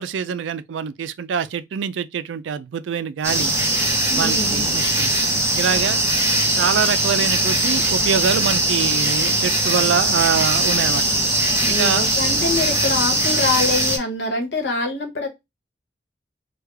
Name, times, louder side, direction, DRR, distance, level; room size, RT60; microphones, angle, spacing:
voice 1, 0.0-3.6 4.1-5.2 5.6-6.0 6.5-11.0 11.7-12.1, right 7 dB, 90° right, 0.4 m, -24 dB
sound 1, 3.2-14.0, right 1 dB, 15° right, 0.8 m, -20 dB
voice 2, 4.1-4.7 11.6-15.3, left 3 dB, 70° left, 1.1 m, -25 dB
3.2 x 2.3 x 3.3 m
head